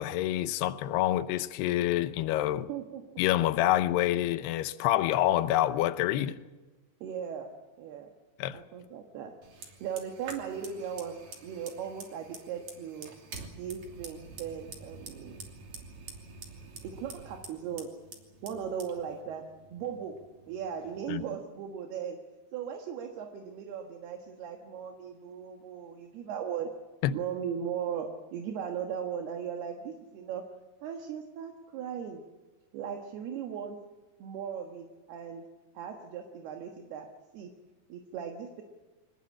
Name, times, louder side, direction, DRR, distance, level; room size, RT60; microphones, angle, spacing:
voice 1, 0.0-2.7 3.2-6.4 8.4-8.6 21.1-21.2 27.0-27.2, left 13 dB, 80° left, 2.9 m, -27 dB
voice 2, 2.7-3.1 7.0-8.1 8.5-9.4 9.8-11.2 11.4-13.1 13.5-15.4 16.8-17.9 18.4-19.4 19.7-22.2 22.5-26.7 27.1-30.5 30.8-32.2 32.7-33.8 34.2-35.5 35.8-37.5 37.9-38.6, right 8 dB, 75° right, 3.5 m, -38 dB
Fire, 9.4-21.3, right 4 dB, 45° right, 3.9 m, -48 dB
25.5 x 19.0 x 8.6 m
omnidirectional pair, 4.7 m